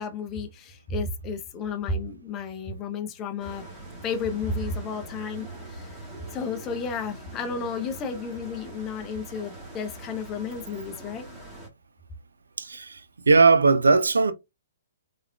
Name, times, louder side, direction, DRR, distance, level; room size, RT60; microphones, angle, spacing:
voice 1, 0.0-3.7 4.0-6.0 6.3-11.2, left 4 dB, 25° left, 0.5 m, -32 dB
sound 1, 3.4-11.7, right 2 dB, 5° right, 1.3 m, -43 dB
voice 2, 12.6-14.3, right 4 dB, 80° right, 0.4 m, -19 dB
3.4 x 2.3 x 2.2 m
figure-of-eight pair, 125°, 0 cm